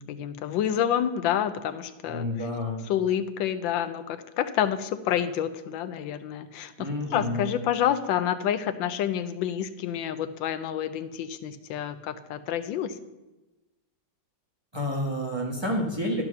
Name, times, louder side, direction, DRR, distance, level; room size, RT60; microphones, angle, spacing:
voice 1, 0.0-2.3 2.9-13.0, left 10 dB, 85° left, 12 dB, 1.3 m, -28 dB
voice 2, 2.0-2.9 6.8-7.5 14.7-16.2, left 1 dB, 15° right, -1 dB, 1.1 m, -29 dB
12.0 x 4.6 x 6.4 m, 1.1 s
omnidirectional pair, 2.0 m